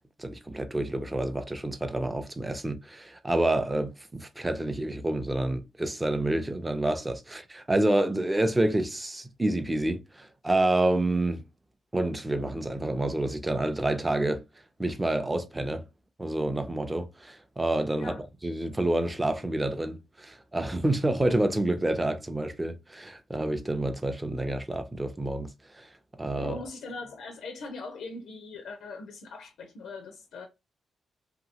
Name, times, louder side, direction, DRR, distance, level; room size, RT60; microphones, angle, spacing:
voice 1, 0.2-11.4 11.9-14.4 14.8-15.8 16.2-18.1 18.4-25.5 25.7-25.9 26.2-26.6, right 1 dB, 10° right, 0.4 m, -28 dB
voice 2, 26.3-30.5, left 3 dB, 85° left, 0.6 m, -41 dB
2.9 x 2.7 x 2.7 m
cardioid pair, 135°, 0 cm